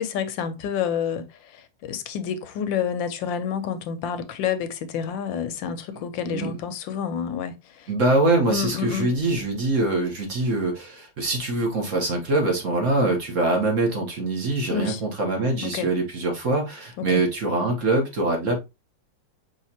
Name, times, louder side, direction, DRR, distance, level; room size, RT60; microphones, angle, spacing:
voice 1, 0.0-7.9 8.5-9.1 14.7-15.0 15.6-15.9 17.0-17.2, left 8 dB, 80° left, 1.3 m, -29 dB
voice 2, 7.9-18.6, right 2 dB, 45° right, 1.3 m, -23 dB
5.6 x 3.1 x 2.8 m
omnidirectional pair, 2.1 m